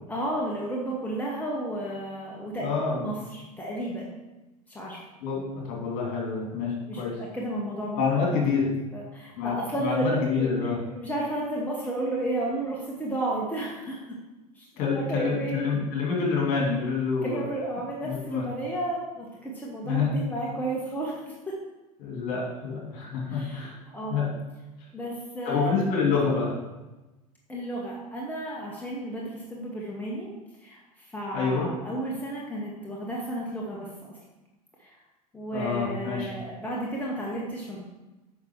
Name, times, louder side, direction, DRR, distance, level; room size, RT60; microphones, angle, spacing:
voice 1, 0.1-4.1 4.7-5.0 6.9-8.0 8.3-8.4 8.9-14.0 14.5-14.7 14.9-15.6 17.2-21.5 23.3-24.3 24.9-25.7 27.5-30.3 30.6-30.8 31.1-34.1 34.8-35.0 35.3-37.8, right 1 dB, 10° left, -4 dB, 1.6 m, -32 dB
voice 2, 2.6-3.0 5.2-5.4 5.7-7.1 8.0-8.7 9.4-10.8 14.8-17.4 18.0-18.4 19.8-20.1 22.0-23.8 24.1-24.3 25.4-26.5 31.3-31.7 35.5-36.3, left 5 dB, 45° left, -2 dB, 3.1 m, -27 dB
9.3 x 5.4 x 4.7 m, 1.1 s
figure-of-eight pair, 75°, 20 cm